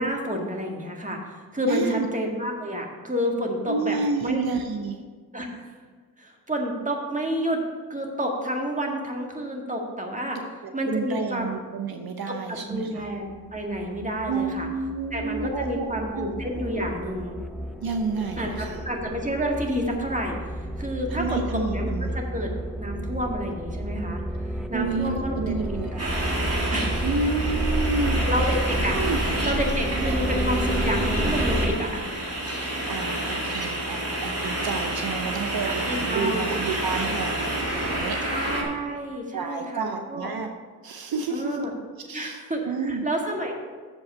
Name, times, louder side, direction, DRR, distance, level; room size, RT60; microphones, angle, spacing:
voice 1, 0.0-4.0 4.2-4.5 5.3-5.7 6.2-7.6 7.9-10.4 10.7-11.5 12.3-14.7 15.1-17.4 18.4-22.5 22.8-24.2 24.7-25.6 26.0-26.2 26.7-27.1 28.3-29.0 29.4-32.1 35.9-36.5 38.2-40.3 41.3-41.7 42.1-43.5, equal, 20° right, 1 dB, 1.8 m, -29 dB
voice 2, 1.7-2.1 3.7-5.0 10.8-13.1 14.3-16.3 17.8-18.8 21.1-22.2 24.7-26.2 27.0-28.2 28.9-29.2 29.4-29.6 30.0-30.2 32.9-38.2 39.3-40.5 40.8-41.7 42.0-43.0, right 4 dB, 75° right, 5 dB, 0.7 m, -30 dB
sound 1, 13.5-31.8, equal, ahead, 0.6 m, -30 dB
sound 2, 26.0-38.6, right 1 dB, 40° right, 2.2 m, -29 dB
7.2 x 5.3 x 7.0 m, 1.5 s
cardioid pair, 50°, 37 cm